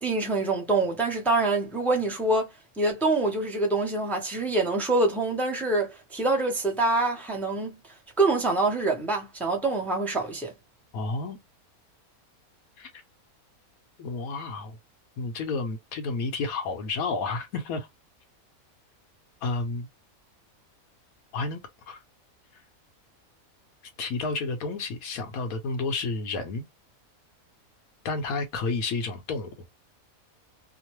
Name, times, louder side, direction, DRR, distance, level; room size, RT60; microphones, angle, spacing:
voice 1, 0.0-2.5 2.8-7.8 8.2-10.5, right 2 dB, ahead, 0.6 m, -25 dB
voice 2, 10.9-11.4 12.8-12.9 14.0-14.8 15.2-17.9 19.4-19.9 21.3-21.6 21.9-22.0 24.0-26.7 28.0-29.5, left 3 dB, 80° left, 1.2 m, -31 dB
2.9 x 2.1 x 3.0 m
omnidirectional pair, 1.5 m